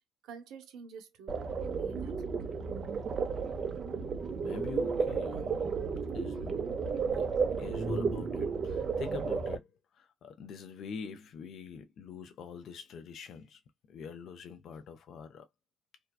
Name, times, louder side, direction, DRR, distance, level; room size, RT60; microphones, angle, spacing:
voice 1, 0.2-2.6, right 6 dB, 85° right, 0.8 m, -50 dB
sound 1, 1.3-9.6, right 5 dB, 50° right, 0.6 m, -33 dB
voice 2, 4.4-5.7 6.1-13.6 13.9-15.5, left 6 dB, 70° left, 0.5 m, -45 dB
2.7 x 2.2 x 2.2 m
cardioid pair, 90°, 0 cm